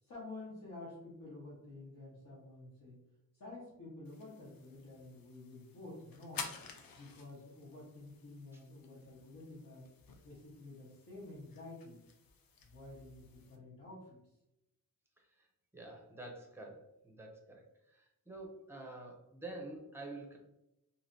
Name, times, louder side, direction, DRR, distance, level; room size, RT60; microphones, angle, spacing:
voice 1, 0.0-3.0 3.3-6.5 6.9-9.9 10.2-12.0 12.6-14.4, left 2 dB, 65° left, -8 dB, 1.2 m, -50 dB
sound 1, 4.1-13.6, left 5 dB, 90° left, 0.6 m, -52 dB
voice 2, 15.7-20.4, right 2 dB, 5° right, 1 dB, 0.5 m, -48 dB
3.2 x 2.8 x 2.6 m, 0.89 s
wide cardioid pair, 170°, 34 cm